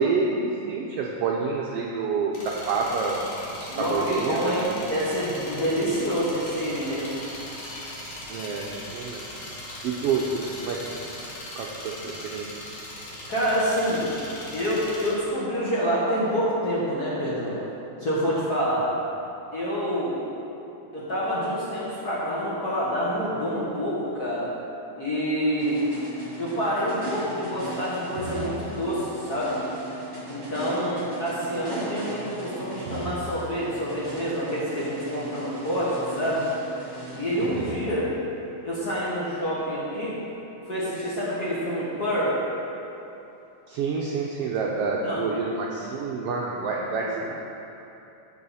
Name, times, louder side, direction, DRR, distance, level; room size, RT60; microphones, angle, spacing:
voice 1, 0.0-4.8 8.3-9.3 9.8-10.8 11.6-12.5 37.4-37.8 43.7-47.4, right 4 dB, 80° right, -2 dB, 1.4 m, -28 dB
sound 1, 2.3-15.1, left 1 dB, 80° left, 3.4 m, -39 dB
voice 2, 3.7-7.2 13.3-14.1 14.5-17.6 18.0-18.9 19.5-20.2 20.9-24.5 25.0-25.9 26.4-29.6 30.3-36.5 37.1-38.1 38.6-40.2 40.7-42.4 45.0-45.2 47.0-47.1, equal, 40° left, -8 dB, 1.6 m, -27 dB
sound 2, 25.6-38.3, right 2 dB, 25° right, 1.9 m, -38 dB
14.0 x 5.5 x 4.2 m, 2.9 s
omnidirectional pair, 3.4 m